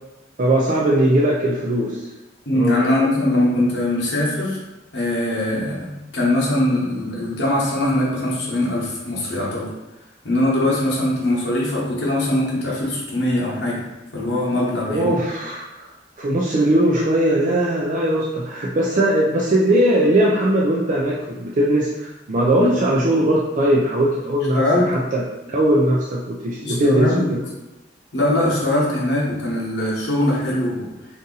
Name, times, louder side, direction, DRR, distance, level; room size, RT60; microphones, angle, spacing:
voice 1, 0.4-2.0 2.5-2.8 14.9-15.9 16.2-24.6 24.9-25.2 25.5-27.4, right 1 dB, 45° right, -4 dB, 0.4 m, -19 dB
voice 2, 2.5-4.6 4.9-9.7 10.2-13.8 14.1-15.1 22.6-22.8 24.5-24.8 26.6-27.3 28.1-30.9, left 1 dB, 85° left, -6 dB, 1.0 m, -21 dB
2.7 x 2.6 x 3.8 m, 0.99 s
head